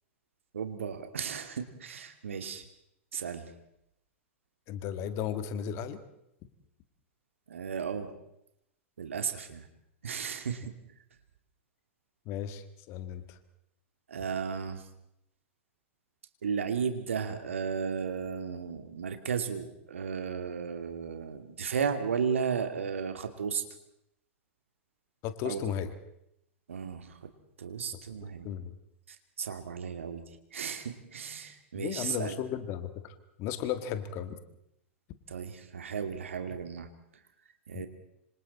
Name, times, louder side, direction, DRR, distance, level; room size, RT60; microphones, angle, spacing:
voice 1, 0.5-2.6 3.1-3.5 7.5-8.1 9.0-9.7 10.0-10.7 14.1-14.8 16.4-23.6 25.4-25.8 26.7-27.2 27.6-28.5 29.4-30.2 30.5-32.4 35.3-36.9 37.7-37.9, right 6 dB, 70° right, 7 dB, 2.4 m, -34 dB
voice 2, 4.7-6.0 12.3-13.4 25.2-25.9 28.4-28.7 31.7-32.9 33.4-34.4 37.7-37.9, left 9 dB, 40° left, 10 dB, 1.9 m, -35 dB
26.5 x 26.0 x 4.3 m, 0.81 s
figure-of-eight pair, 100°, 7 cm